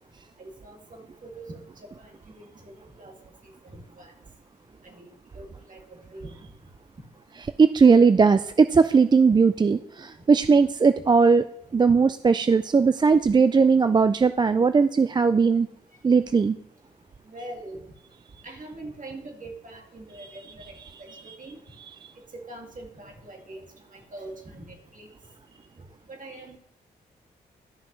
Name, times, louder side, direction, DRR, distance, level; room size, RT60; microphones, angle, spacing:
voice 1, 0.4-3.1 3.6-4.1 4.8-5.1 5.3-5.8 6.1-6.4 17.3-17.8 18.4-20.7 21.0-21.6 22.3-23.6 23.9-25.1 26.1-26.6, right 2 dB, 45° right, 1 dB, 2.2 m, -43 dB
voice 2, 7.6-11.4 11.7-15.7 16.0-16.6 21.1-21.3 22.0-22.1, right 5 dB, 25° right, 11 dB, 0.3 m, -19 dB
13.0 x 5.8 x 3.2 m, 0.76 s
supercardioid pair, 55°, 18 cm